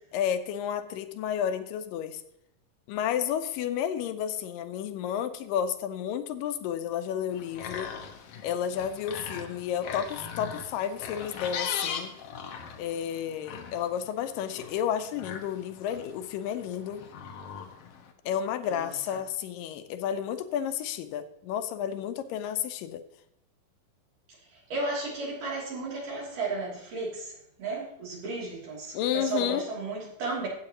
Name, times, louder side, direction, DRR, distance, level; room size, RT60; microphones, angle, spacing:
voice 1, 0.1-2.2 2.9-7.9 8.4-12.1 12.8-17.1 18.3-23.0 28.9-29.6, left 9 dB, 85° left, 10 dB, 2.3 m, -31 dB
sound 1, 7.3-18.1, left 7 dB, 65° left, 1.6 m, -40 dB
voice 2, 24.7-27.3 27.6-30.5, right 3 dB, 70° right, -4 dB, 4.5 m, -34 dB
13.5 x 8.5 x 3.0 m, 0.76 s
omnidirectional pair, 3.9 m